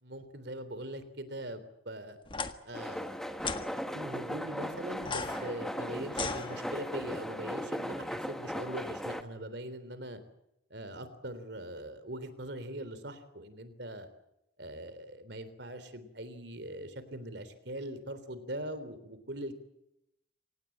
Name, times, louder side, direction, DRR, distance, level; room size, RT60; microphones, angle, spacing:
voice 1, 0.0-2.2 2.7-10.2 10.7-14.1 14.6-19.6, right 1 dB, 65° right, 12 dB, 3.5 m, -42 dB
sound 1, 2.3-2.5 3.4-3.7 5.0-7.0, left 4 dB, 25° left, 1.6 m, -37 dB
sound 2, 2.7-9.2, equal, ahead, 1.5 m, -37 dB
25.0 x 19.0 x 8.8 m, 0.84 s
head